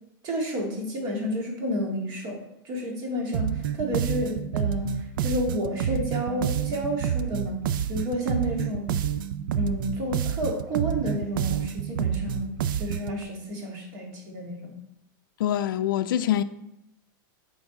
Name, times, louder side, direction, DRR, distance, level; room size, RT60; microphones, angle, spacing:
voice 1, 0.2-7.6 7.9-9.0 9.6-14.8, equal, 40° right, 1.9 m, -30 dB
sound 1, 3.3-13.2, right 9 dB, 75° right, 0.4 m, -28 dB
voice 2, 15.4-16.4, left 11 dB, 75° left, 0.5 m, -24 dB
8.2 x 4.8 x 3.8 m
supercardioid pair, 145°, 11 cm